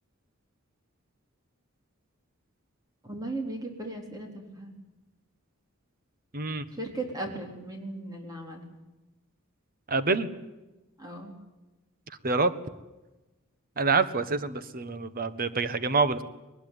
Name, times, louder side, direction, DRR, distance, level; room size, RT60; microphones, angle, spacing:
voice 1, 3.0-4.7 6.8-8.7 11.0-11.4, right 2 dB, 20° right, 2 dB, 4.2 m, -37 dB
voice 2, 6.3-6.6 9.9-10.3 12.2-12.5 13.8-16.2, right 4 dB, 45° right, 13 dB, 1.3 m, -26 dB
21.5 x 20.5 x 9.4 m, 1.1 s
head